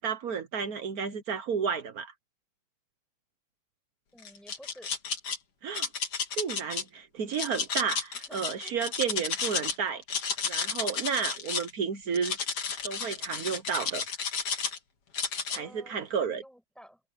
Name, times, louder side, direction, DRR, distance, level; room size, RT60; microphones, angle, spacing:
voice 1, 0.0-2.1 5.6-5.9 6.3-12.4 12.8-14.0 15.5-16.4, right 6 dB, 70° right, 0.8 m, -32 dB
voice 2, 4.1-4.9 8.1-8.7 15.5-17.0, equal, ahead, 7.8 m, -52 dB
sound 1, 4.2-5.4 5.7-6.8 7.3-9.8 10.0-11.7 12.1-14.8 15.1-15.6, left 6 dB, 50° left, 3.3 m, -32 dB
omnidirectional pair, 3.3 m